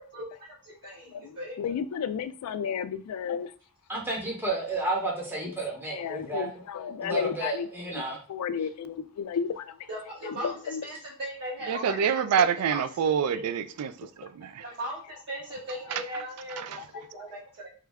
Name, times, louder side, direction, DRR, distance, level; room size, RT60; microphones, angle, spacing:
voice 1, 0.0-1.6 9.9-12.8 13.3-13.4 14.6-17.7, equal, 50° right, 0.8 m, -38 dB
voice 2, 1.6-3.5 5.4-5.5 5.9-7.7 8.1-9.6 10.2-10.8, left 7 dB, 80° left, 0.3 m, -32 dB
voice 3, 3.9-6.5 7.0-8.2, right 2 dB, 10° right, 0.8 m, -31 dB
voice 4, 11.7-14.6 15.9-16.0 16.6-16.7, right 7 dB, 75° right, 0.3 m, -27 dB
3.1 x 2.3 x 3.4 m
head